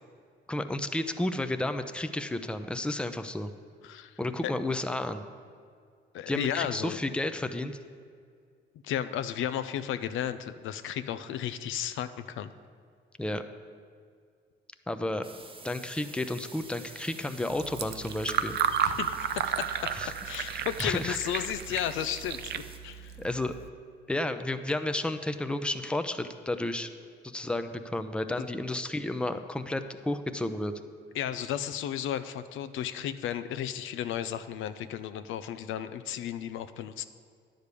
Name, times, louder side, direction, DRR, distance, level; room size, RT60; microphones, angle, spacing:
voice 1, 0.5-3.5 4.2-5.2 6.3-7.8 13.2-13.4 14.9-15.2 15.6-18.6 19.9-20.1 20.5-21.4 23.2-23.5 24.1-26.9 27.2-30.7, left 1 dB, 5° left, 9 dB, 0.6 m, -32 dB
voice 2, 3.8-4.5 6.1-7.0 8.8-12.5 18.8-20.0 20.2-23.2 31.1-37.1, left 10 dB, 85° left, 12 dB, 0.5 m, -34 dB
sound 1, 15.2-22.8, right 3 dB, 25° right, 1.0 m, -50 dB
Fill (with liquid), 17.5-23.7, right 8 dB, 55° right, 0.5 m, -33 dB
10.5 x 5.1 x 8.3 m, 2.2 s
cardioid pair, 90°, 20 cm